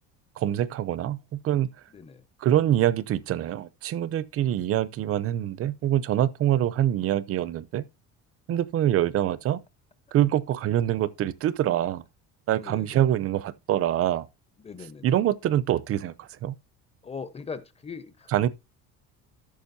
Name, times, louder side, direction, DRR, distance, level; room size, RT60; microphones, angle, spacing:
voice 1, 0.4-1.7 2.4-7.8 8.5-9.6 10.1-12.0 12.5-14.3 15.0-16.5 18.3-18.5, right 12 dB, 45° right, 0.7 m, -25 dB
voice 2, 12.6-13.2 14.6-15.2 17.0-18.3, left 5 dB, 20° left, 1.0 m, -40 dB
13.5 x 6.1 x 2.7 m
cardioid pair, 145°, 33 cm